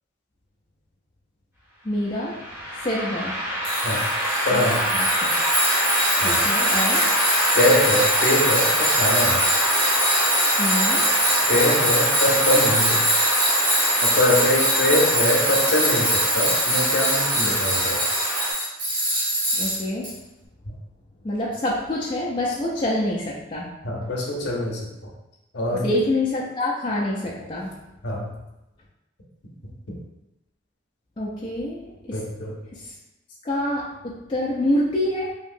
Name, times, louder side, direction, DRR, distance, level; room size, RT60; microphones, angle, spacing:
voice 1, 1.8-2.4 2.8-3.4 4.5-5.3 6.2-7.1 10.6-11.1 19.6-20.1 21.2-23.7 25.8-27.8 31.2-31.8 32.1-32.2 32.7-32.8 33.4-35.3, left 1 dB, 25° left, -6 dB, 0.3 m, -26 dB
sound 1, 2.1-18.5, equal, 10° right, 1.1 m, -25 dB
Tools, 3.6-20.1, right 1 dB, 75° right, 1.2 m, -23 dB
voice 2, 4.4-4.8 6.2-6.4 7.5-9.4 11.5-13.0 14.0-18.0 20.6-20.7 23.8-25.1 25.5-25.9 28.0-28.3 32.1-32.5, left 1 dB, 60° left, -3 dB, 0.7 m, -23 dB
2.9 x 2.7 x 2.5 m, 0.94 s
head